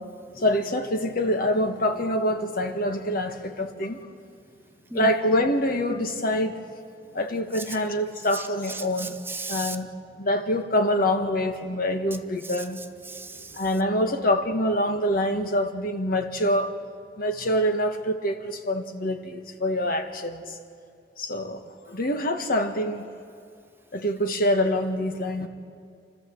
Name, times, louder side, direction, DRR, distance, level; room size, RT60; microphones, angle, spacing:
voice 1, 0.3-4.0 4.9-6.6 7.1-9.2 9.5-9.9 10.2-12.8 13.5-16.7 17.2-20.6 21.2-23.1 23.9-25.5, left 1 dB, 55° left, 6 dB, 1.5 m, -25 dB
voice 2, 8.3-9.8 12.4-12.6 13.1-13.6, right 3 dB, 15° right, 8 dB, 0.7 m, -36 dB
29.5 x 13.0 x 7.7 m, 2.4 s
head